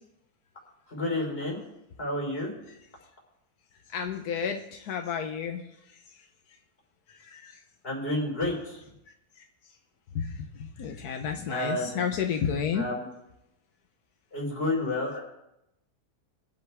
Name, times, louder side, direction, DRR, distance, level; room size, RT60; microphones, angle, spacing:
voice 1, 0.9-1.6 2.0-2.5 7.8-8.8 11.5-12.0 12.7-13.0 14.3-15.2, left 1 dB, 35° left, -2 dB, 4.7 m, -30 dB
voice 2, 3.9-5.6 7.3-7.5 10.1-10.3 10.6-12.9, left 7 dB, 85° left, 4 dB, 1.4 m, -31 dB
22.0 x 8.0 x 3.5 m, 0.85 s
omnidirectional pair, 1.6 m